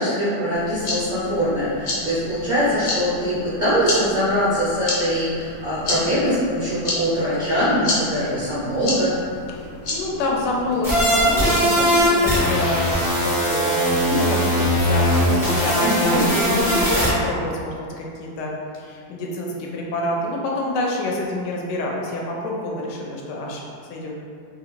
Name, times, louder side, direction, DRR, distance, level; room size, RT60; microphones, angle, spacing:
voice 1, 0.0-9.1 15.8-16.2, equal, 75° right, -11 dB, 0.4 m, -22 dB
sound 1, 0.5-10.7, left 2 dB, 60° left, 1.0 m, -31 dB
voice 2, 9.9-23.6 23.9-24.1, left 2 dB, 80° left, -2 dB, 1.2 m, -27 dB
sound 2, 10.8-17.1, equal, 5° right, 0.4 m, -20 dB
2.9 x 2.5 x 3.0 m, 2.3 s
omnidirectional pair, 1.8 m